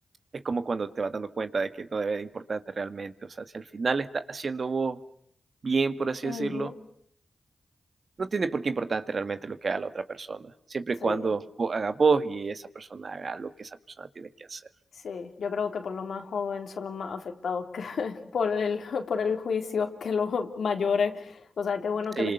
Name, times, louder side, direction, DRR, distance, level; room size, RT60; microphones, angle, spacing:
voice 1, 0.3-3.1 3.4-5.0 5.6-6.7 8.2-13.7 14.0-14.6 22.2-22.3, right 4 dB, 60° right, 11 dB, 1.8 m, -29 dB
voice 2, 6.2-6.8 11.0-11.3 15.0-22.3, left 5 dB, 85° left, 5 dB, 3.4 m, -30 dB
29.0 x 26.0 x 6.7 m, 0.69 s
cardioid pair, 45°, 0 cm